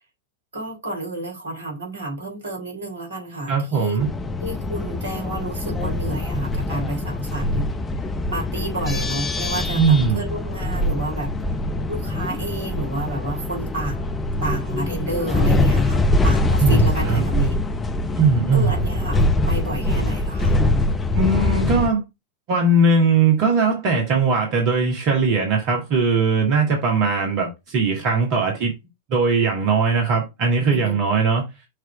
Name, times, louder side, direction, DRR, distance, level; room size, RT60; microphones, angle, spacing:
voice 1, 0.5-4.1 4.4-7.7 8.3-11.3 11.9-17.5 18.5-20.6 30.7-31.0, right 1 dB, 70° right, 2.9 m, -30 dB
voice 2, 3.5-4.1 9.8-10.2 16.6-17.2 18.2-18.8 21.1-22.0 22.5-28.7 29.1-31.4, right 4 dB, 45° right, 1.8 m, -19 dB
sound 1, 4.0-21.9, left 2 dB, 15° left, 0.7 m, -23 dB
6.6 x 3.1 x 4.8 m
figure-of-eight pair, 90°, 0 cm